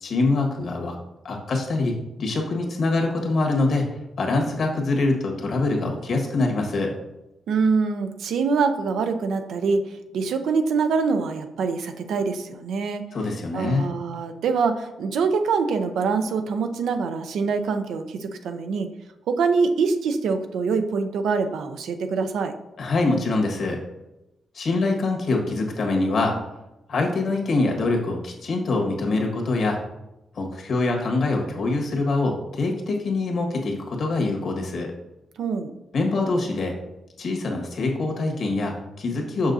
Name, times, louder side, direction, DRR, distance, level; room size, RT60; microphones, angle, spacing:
voice 1, 0.0-0.9 1.2-3.9 4.2-6.9 13.1-13.9 22.8-23.8 24.5-26.3 26.9-29.8 30.3-34.9 35.9-36.7 37.2-39.5, left 3 dB, 65° left, 1 dB, 1.5 m, -24 dB
voice 2, 7.5-13.0 13.5-18.9 19.3-22.6 35.4-35.7, right 5 dB, 85° right, 7 dB, 0.5 m, -24 dB
6.4 x 6.0 x 2.7 m, 0.94 s
cardioid pair, 80°, 0 cm